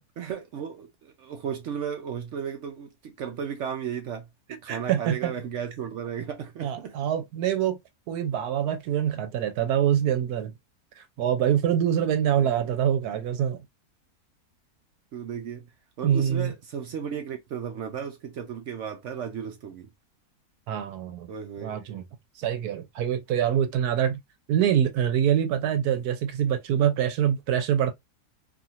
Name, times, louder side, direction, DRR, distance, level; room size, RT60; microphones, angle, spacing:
voice 1, 0.2-7.0 12.4-12.7 15.1-15.7 16.0-19.9 21.3-22.0, right 8 dB, 65° right, 0.8 m, -35 dB
voice 2, 4.7-5.3 6.6-7.8 8.1-10.5 11.0-13.6 16.0-16.5 20.7-21.3 21.6-22.0 22.4-24.2 24.5-27.9, right 9 dB, 85° right, 1.2 m, -25 dB
2.7 x 2.5 x 2.7 m
omnidirectional pair, 1.6 m